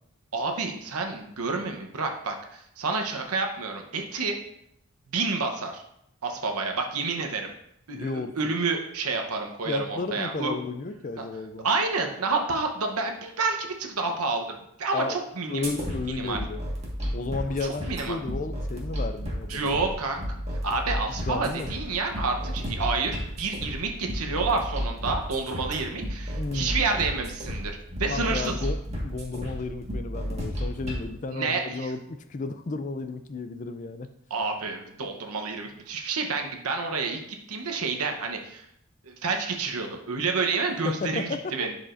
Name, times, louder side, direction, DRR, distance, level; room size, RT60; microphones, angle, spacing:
voice 1, 0.3-4.4 5.1-5.8 6.2-7.5 7.9-10.5 11.2-11.3 11.6-14.5 14.8-15.6 16.1-16.4 17.6-18.2 19.5-20.2 20.6-27.7 28.0-28.5 31.3-31.9 34.3-37.2 37.5-38.6 39.1-41.7, right 4 dB, 80° right, 3 dB, 0.9 m, -29 dB
voice 2, 7.9-8.5 9.7-11.7 14.9-15.2 15.5-16.6 17.1-19.8 21.3-21.7 26.4-26.9 28.1-34.1 40.8-41.7, left 3 dB, 35° left, 10 dB, 0.4 m, -33 dB
sound 1, 15.6-31.0, equal, 30° right, 1.5 m, -33 dB
11.0 x 4.8 x 2.6 m, 0.75 s
head